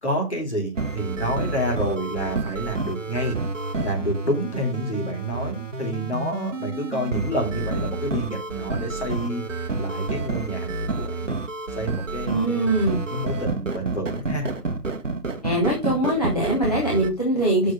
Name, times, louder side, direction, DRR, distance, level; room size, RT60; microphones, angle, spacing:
voice 1, 0.0-3.4 3.8-11.4 11.8-12.6 13.1-14.5, equal, 45° left, 1 dB, 2.8 m, -29 dB
sound 1, 0.8-17.1, right 3 dB, 50° right, 0.9 m, -29 dB
voice 2, 12.3-13.0 15.4-17.7, right 1 dB, 25° left, -4 dB, 1.1 m, -22 dB
6.4 x 4.0 x 6.1 m, 0.30 s
figure-of-eight pair, 170°, 47 cm